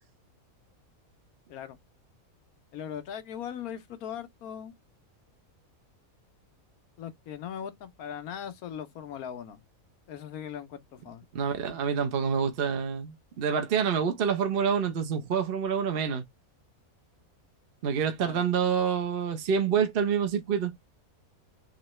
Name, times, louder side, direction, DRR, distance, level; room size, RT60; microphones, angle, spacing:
voice 1, 2.7-4.7 7.0-9.6 10.1-11.2 18.2-18.4, left 9 dB, 85° left, 1.2 m, -39 dB
voice 2, 11.3-16.2 17.8-20.7, right 7 dB, 50° right, 0.8 m, -27 dB
3.9 x 2.9 x 3.1 m
omnidirectional pair, 1.5 m